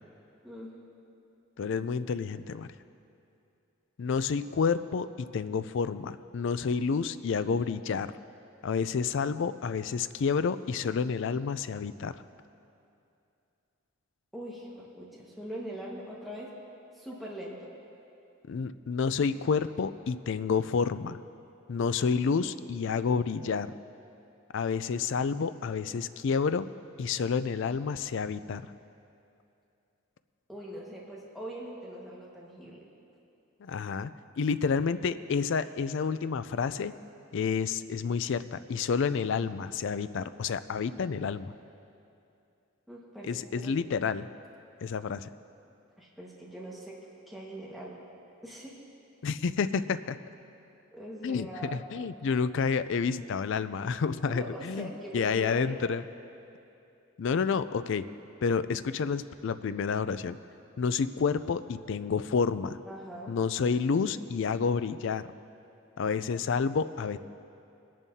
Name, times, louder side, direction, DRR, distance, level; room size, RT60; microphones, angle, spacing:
voice 1, 1.6-2.7 4.0-5.1 5.3-8.1 8.6-12.1 18.5-21.2 21.7-23.7 24.5-26.7 27.0-28.6 33.6-34.1 34.4-36.9 37.3-41.5 43.2-44.3 44.8-45.3 49.2-50.2 51.2-56.0 57.2-58.0 58.4-60.4 60.8-62.8 63.3-65.2 66.0-67.2, left 5 dB, 55° left, 13 dB, 0.3 m, -29 dB
voice 2, 14.3-16.5 16.9-17.6 30.5-32.8 42.9-43.7 46.0-47.0 47.3-48.0 48.4-48.8 50.9-51.8 54.3-55.9 62.9-63.4, right 1 dB, ahead, -6 dB, 1.5 m, -42 dB
22.0 x 10.5 x 2.8 m, 2.7 s
head